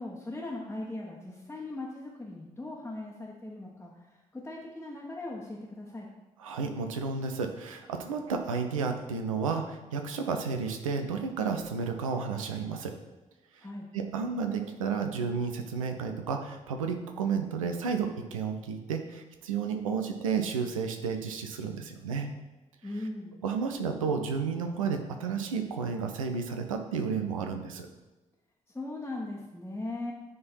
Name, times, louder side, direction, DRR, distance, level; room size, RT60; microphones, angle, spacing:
voice 1, 0.0-6.1 13.6-13.9 22.8-23.3 28.7-30.1, left 2 dB, 10° left, -4 dB, 1.2 m, -39 dB
voice 2, 6.4-12.9 13.5-13.7 13.9-22.3 23.4-27.9, right 5 dB, 80° right, 5 dB, 0.6 m, -32 dB
9.4 x 3.8 x 4.4 m, 1.1 s
figure-of-eight pair, 40°, 17 cm